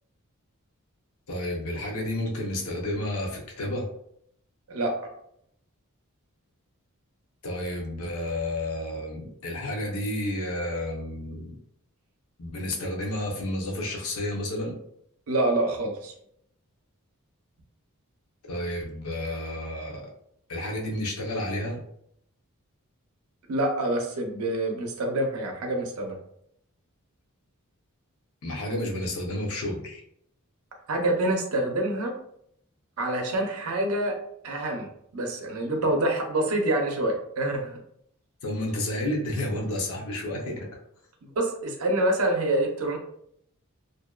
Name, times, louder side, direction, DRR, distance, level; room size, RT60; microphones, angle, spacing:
voice 1, 1.3-3.9 7.4-11.5 12.4-14.8 18.5-20.0 20.5-21.8 28.4-30.0 38.4-40.7, left 1 dB, 75° left, 1 dB, 0.6 m, -31 dB
voice 2, 4.7-5.1 15.3-16.1 23.5-26.2 30.9-32.2 33.0-34.2 34.4-37.7 41.2-43.0, right 1 dB, 75° right, 2 dB, 0.5 m, -26 dB
2.5 x 2.1 x 2.3 m, 0.71 s
head